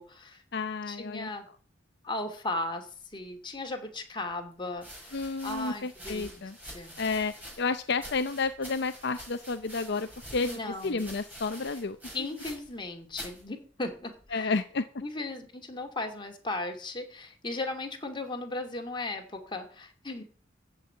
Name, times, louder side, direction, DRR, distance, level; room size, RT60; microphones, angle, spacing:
voice 1, 0.0-0.4 0.9-1.4 2.0-2.9 3.1-5.2 5.4-7.0 10.4-11.0 12.1-14.6 15.0-20.2, left 2 dB, 25° left, 4 dB, 2.5 m, -36 dB
voice 2, 0.5-1.3 5.1-6.6 7.0-12.0 14.3-14.9, left 4 dB, 60° left, 10 dB, 0.7 m, -31 dB
sound 1, 3.7-3.8 4.7-12.8 13.1-13.4 14.2-14.6, equal, 10° right, 5.6 m, -47 dB
14.5 x 5.5 x 9.1 m, 0.41 s
head